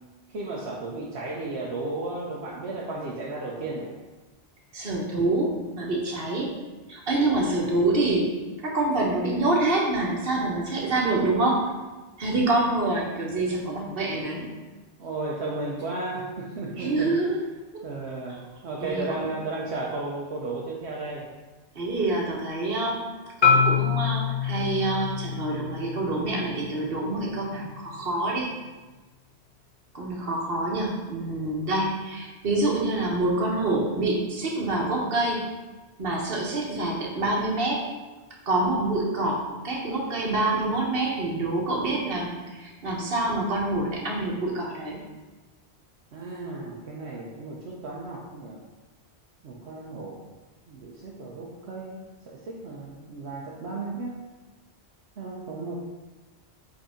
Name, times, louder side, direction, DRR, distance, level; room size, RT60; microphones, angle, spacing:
voice 1, 0.3-3.9 15.0-17.1 17.8-21.3 46.1-48.6 49.4-50.2 50.7-52.0 52.3-54.1 55.2-55.8, right 2 dB, 75° right, -4 dB, 1.1 m, -34 dB
voice 2, 4.7-6.5 6.9-8.2 8.6-11.6 12.2-14.5 16.8-17.4 17.7-17.8 18.8-19.3 21.7-23.0 23.4-28.5 29.9-35.4 36.0-37.8 38.5-42.3 42.6-45.0, right 2 dB, 55° right, -2 dB, 1.4 m, -26 dB
Marimba xylophone, 23.4-27.6, left 6 dB, 50° left, 0.7 m, -26 dB
5.1 x 4.0 x 4.9 m, 1.2 s
omnidirectional pair, 1.1 m